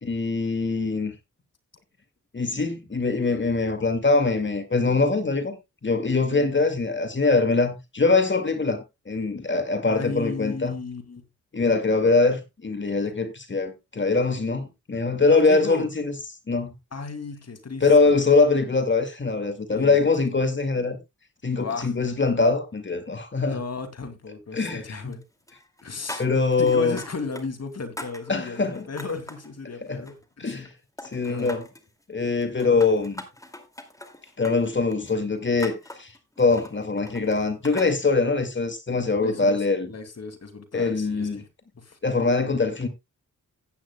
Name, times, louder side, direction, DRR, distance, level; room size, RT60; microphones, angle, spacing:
voice 1, 0.0-1.1 2.3-5.6 5.8-10.8 11.5-16.1 16.5-16.7 17.8-21.0 21.4-23.6 24.5-25.1 26.2-27.0 28.3-28.9 29.9-30.0 30.4-30.7 31.0-31.6 32.1-33.2 34.4-36.1 36.4-39.9 40.7-41.4 42.0-42.9, left 3 dB, 35° left, 2.0 m, -23 dB
voice 2, 9.9-11.2 15.2-15.9 16.9-18.2 19.7-20.0 21.5-21.9 23.4-25.2 25.8-26.2 26.6-30.5 31.3-31.5 32.7-32.8 39.1-41.4 41.8-42.0, left 4 dB, 55° left, 2.4 m, -35 dB
sound 1, 24.7-25.2 25.5-27.5 27.7-29.5 29.9-30.7 31.0-31.9 32.4-37.9, left 1 dB, 10° left, 2.3 m, -42 dB
15.5 x 9.3 x 2.2 m
cardioid pair, 60°, 31 cm